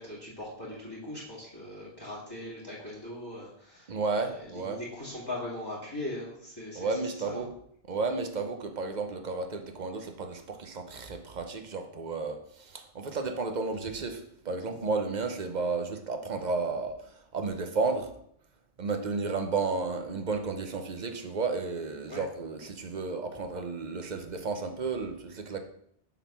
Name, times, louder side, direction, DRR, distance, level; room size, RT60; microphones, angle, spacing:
voice 1, 0.0-3.9 4.2-6.9 7.2-7.4 22.1-22.2, left 1 dB, 20° left, -7 dB, 2.4 m, -40 dB
voice 2, 3.9-4.8 6.7-7.5 7.9-18.1 18.8-25.6, right 4 dB, 45° right, 6 dB, 0.9 m, -32 dB
7.3 x 4.1 x 5.7 m, 0.69 s
omnidirectional pair, 1.1 m